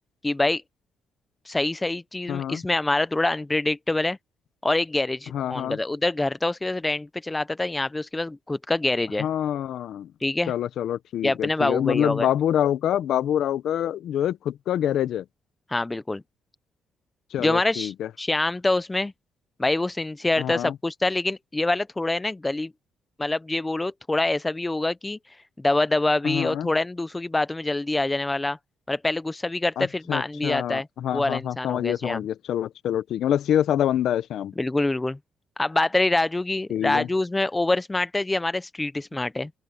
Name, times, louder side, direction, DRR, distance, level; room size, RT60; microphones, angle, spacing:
voice 1, 0.2-0.6 1.5-4.2 4.6-9.3 10.2-10.5 11.2-12.3 15.7-16.2 17.4-19.1 19.6-22.7 23.2-25.2 25.6-28.6 28.9-30.9 31.1-32.2 34.6-35.2 35.6-39.5, left 2 dB, 15° left, 0.7 m, -25 dB
voice 2, 2.3-2.6 5.3-5.8 9.2-10.1 10.5-15.2 17.3-18.1 20.4-20.7 26.2-26.7 29.8-34.5 36.7-37.1, left 10 dB, 75° left, 1.1 m, -26 dB
open air
cardioid pair, 90°, 0 cm